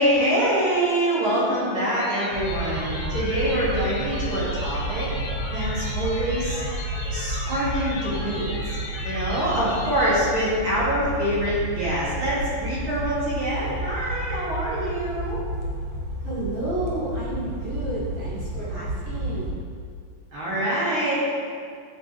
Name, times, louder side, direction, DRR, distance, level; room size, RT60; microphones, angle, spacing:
voice 1, 0.0-5.1 5.5-6.6 7.1-8.5 9.0-15.4 20.3-21.3, right 1 dB, 35° right, -10 dB, 2.1 m, -25 dB
sound 1, 1.9-10.1, left 2 dB, 85° left, 1.5 m, -36 dB
sound 2, 2.3-19.5, right 1 dB, 80° right, 3.6 m, -31 dB
voice 2, 16.2-19.5, right 1 dB, 50° right, -11 dB, 3.8 m, -31 dB
11.5 x 5.9 x 3.3 m, 2.1 s
omnidirectional pair, 5.5 m